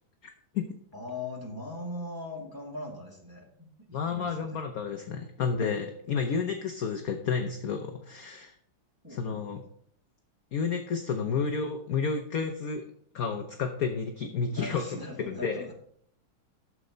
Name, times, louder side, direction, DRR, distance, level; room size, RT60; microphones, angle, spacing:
voice 1, 0.9-4.6 9.0-9.6 14.5-15.7, left 1 dB, 10° right, -3 dB, 2.1 m, -40 dB
voice 2, 3.9-8.5 9.1-9.6 10.5-12.8 13.1-14.8 15.3-15.7, left 5 dB, 60° left, 5 dB, 1.0 m, -31 dB
12.5 x 7.4 x 3.9 m, 0.67 s
omnidirectional pair, 2.3 m